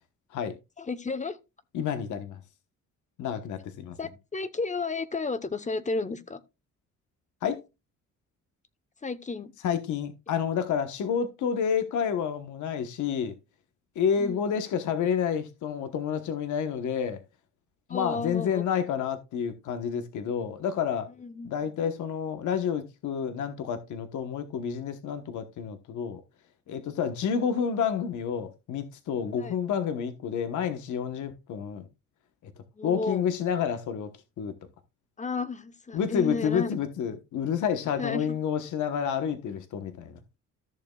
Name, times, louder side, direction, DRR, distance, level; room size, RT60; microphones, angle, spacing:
voice 1, 0.8-1.4 4.0-6.4 9.0-9.5 14.2-14.5 17.9-18.6 21.2-21.7 29.4-29.6 32.7-33.2 35.2-36.7 38.0-38.4, left 3 dB, 25° left, 1.0 m, -33 dB
voice 2, 1.7-2.4 3.2-4.0 7.4-7.6 9.6-13.3 13.9-17.2 17.9-21.1 21.4-26.2 26.7-31.9 32.4-32.5 32.8-34.1 34.4-34.5 35.9-40.2, left 7 dB, 75° left, 1.2 m, -29 dB
14.0 x 6.7 x 2.4 m
cardioid pair, 90°, 30 cm